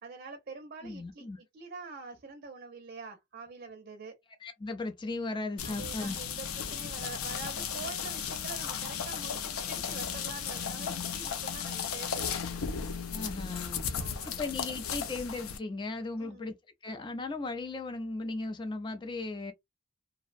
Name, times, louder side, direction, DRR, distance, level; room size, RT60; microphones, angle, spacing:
voice 1, 0.0-4.2 5.6-12.3 14.0-14.5 16.2-16.4, right 4 dB, 45° right, 0.5 m, -45 dB
voice 2, 0.8-1.4 4.4-6.2 13.1-13.8 14.3-16.5 16.8-19.5, left 3 dB, 20° left, 0.4 m, -37 dB
sound 1, 5.6-15.6, left 7 dB, 90° left, 0.5 m, -35 dB
2.5 x 2.0 x 2.4 m
head